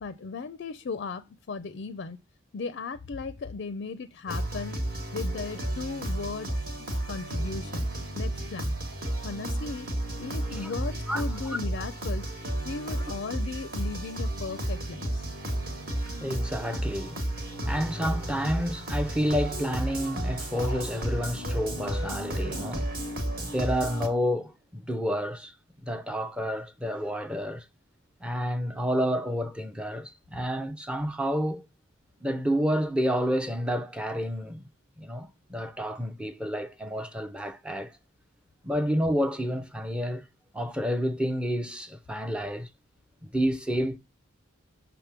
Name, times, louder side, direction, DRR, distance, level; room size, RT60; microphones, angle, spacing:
voice 1, 0.0-2.2 2.5-4.8 5.1-6.5 6.8-7.9 8.1-8.7 9.2-9.9 10.2-12.3 12.6-15.3, left 4 dB, 50° left, 0.4 m, -36 dB
sound 1, 4.3-24.1, right 1 dB, 45° right, 1.4 m, -32 dB
voice 2, 15.7-22.9 23.4-25.5 25.8-27.7 28.2-31.6 32.2-34.6 35.0-38.0 38.6-40.3 40.5-42.7 43.2-44.0, equal, 5° right, 0.5 m, -30 dB
6.0 x 3.5 x 5.8 m
head